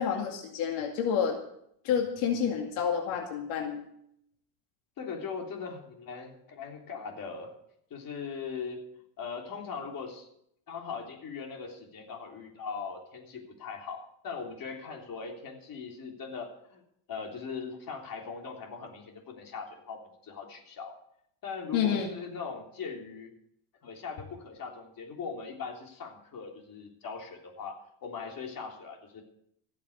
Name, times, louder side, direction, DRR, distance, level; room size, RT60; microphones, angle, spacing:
voice 1, 0.0-1.4 1.8-3.9 21.7-22.1, left 7 dB, 80° left, 1 dB, 2.4 m, -29 dB
voice 2, 5.0-7.5 7.9-8.8 9.2-10.3 10.7-16.8 17.1-21.0 21.4-23.3 23.8-29.2, left 5 dB, 45° left, 1 dB, 3.5 m, -40 dB
17.0 x 7.3 x 8.1 m, 0.72 s
cardioid pair, 125°, 48 cm